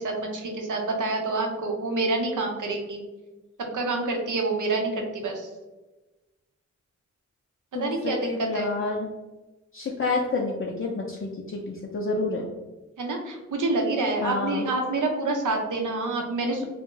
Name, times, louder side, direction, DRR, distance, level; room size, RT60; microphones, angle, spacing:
voice 1, 0.0-3.0 3.6-5.5 7.7-8.7 13.0-16.6, right 2 dB, 80° right, 2 dB, 0.6 m, -27 dB
voice 2, 7.7-9.1 9.7-12.5 14.2-14.7, left 3 dB, 45° left, -1 dB, 0.4 m, -29 dB
2.4 x 2.0 x 3.7 m, 1.1 s
cardioid pair, 50°, 30 cm